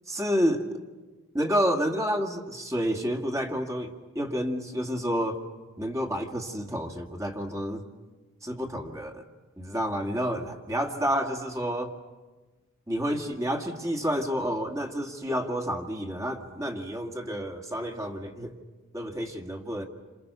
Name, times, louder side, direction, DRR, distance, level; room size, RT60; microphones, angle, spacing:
voice 1, 0.1-0.9 1.3-5.4 5.8-7.8 8.4-9.2 9.6-11.9 12.9-18.5 18.9-19.8, equal, 15° right, 3 dB, 2.1 m, -29 dB
29.0 x 27.5 x 6.9 m, 1.2 s
head